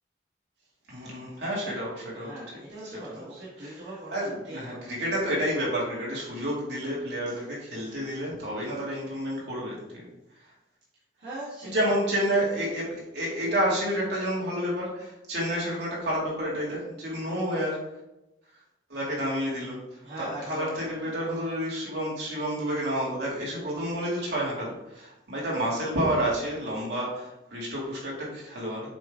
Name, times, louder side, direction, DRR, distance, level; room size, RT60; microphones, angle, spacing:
voice 1, 0.9-2.6 3.1-3.2 3.6-3.7 4.1-10.0 11.6-17.8 18.9-19.8 20.2-28.9, equal, 65° right, -5 dB, 2.3 m, -30 dB
voice 2, 2.2-4.9 7.3-7.4 8.7-8.9 11.2-11.9 20.0-21.2, right 1 dB, 80° right, -9 dB, 1.7 m, -41 dB
7.4 x 3.7 x 3.6 m, 0.92 s
head